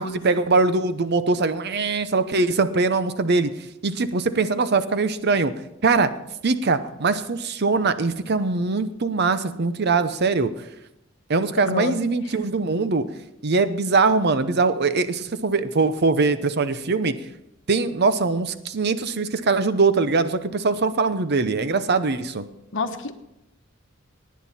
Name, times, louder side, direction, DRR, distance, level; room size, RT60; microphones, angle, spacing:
voice 1, 0.0-3.5 3.8-5.5 5.8-6.1 6.4-10.5 11.3-13.0 13.4-17.1 17.7-22.5, right 4 dB, 55° right, 12 dB, 0.8 m, -22 dB
voice 2, 22.7-23.1, left 3 dB, 65° left, 8 dB, 1.1 m, -27 dB
18.0 x 9.4 x 4.3 m, 0.85 s
head